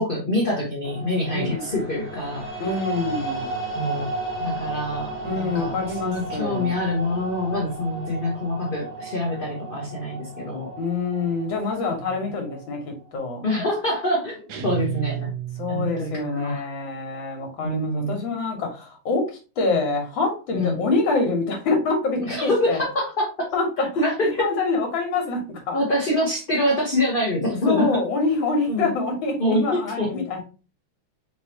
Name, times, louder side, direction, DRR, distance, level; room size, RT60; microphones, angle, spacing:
voice 1, 0.0-2.5 3.8-4.1 4.4-10.7 12.1-12.3 13.4-15.3 15.7-16.7 17.6-18.2 20.5-20.8 22.3-23.5 23.8-24.5 25.7-28.0 28.7-28.9 29.4-30.2, left 1 dB, 40° left, 0.7 m, -25 dB
sound 1, 0.8-13.1, right 2 dB, 5° right, 1.6 m, -34 dB
voice 2, 1.3-1.6 2.6-3.5 5.2-6.7 10.8-13.4 15.6-22.8 23.5-25.8 27.7-30.4, left 3 dB, 70° left, 1.9 m, -26 dB
sound 2, 14.5-16.2, right 10 dB, 70° right, 1.1 m, -31 dB
4.5 x 3.0 x 2.8 m
omnidirectional pair, 2.2 m